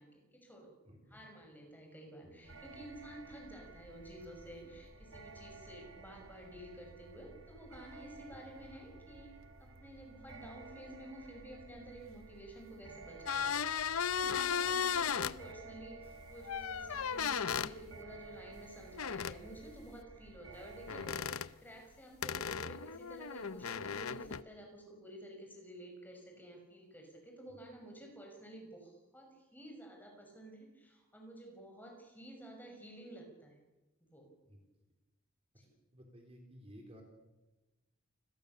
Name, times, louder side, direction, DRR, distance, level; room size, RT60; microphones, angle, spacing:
voice 1, 0.0-0.7 1.1-13.5 13.9-33.5 34.1-34.3 35.6-35.7, right 1 dB, 10° left, 2 dB, 6.2 m, -52 dB
voice 2, 0.8-1.2 2.2-2.5 4.6-4.7 8.3-8.4 14.6-14.7 34.4-34.6 35.9-37.0, equal, 25° right, 2 dB, 3.9 m, -56 dB
sound 1, 2.4-21.3, right 3 dB, 75° right, 1.6 m, -54 dB
sound 2, 13.3-15.3 16.5-17.7 19.0-19.4 20.9-21.5 22.2-24.4, left 7 dB, 85° left, 0.8 m, -35 dB
29.5 x 21.0 x 6.8 m, 1.1 s
head